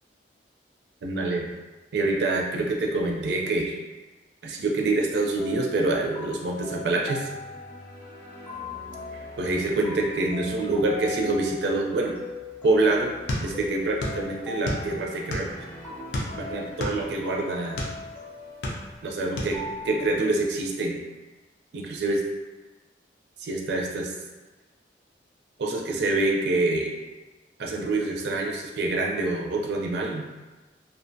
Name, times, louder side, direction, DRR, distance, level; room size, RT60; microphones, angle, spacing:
voice 1, 1.0-1.5 1.9-3.8 4.4-7.3 9.4-12.1 12.6-13.1 13.4-15.7 16.3-17.8 19.0-19.6 19.8-21.0 21.7-22.2 23.4-24.1 25.6-26.9 27.6-30.3, right 2 dB, 70° right, 0 dB, 0.4 m, -26 dB
sound 1, 5.4-20.2, left 3 dB, 10° left, 0.5 m, -40 dB
sound 2, 13.3-14.2 14.5-15.6 16.1-18.0 18.4-19.1 19.4-19.6, left 1 dB, 75° left, 0.5 m, -30 dB
2.5 x 2.1 x 2.6 m, 1.2 s
head